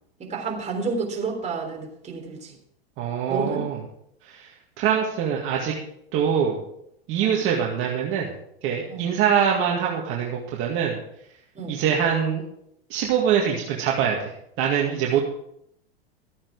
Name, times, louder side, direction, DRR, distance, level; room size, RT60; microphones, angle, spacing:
voice 1, 0.2-2.5 3.3-3.6 7.2-7.4 8.9-9.1 11.6-11.8 15.1-15.2, right 4 dB, 20° right, 1 dB, 3.5 m, -30 dB
voice 2, 3.0-3.8 4.2-4.5 4.8-5.7 6.1-6.6 7.1-8.3 8.6-11.0 11.7-12.4 12.9-14.3 14.6-15.2, right 8 dB, 40° right, -1 dB, 2.0 m, -23 dB
14.0 x 8.7 x 4.8 m, 0.75 s
hypercardioid pair, 105°, 31 cm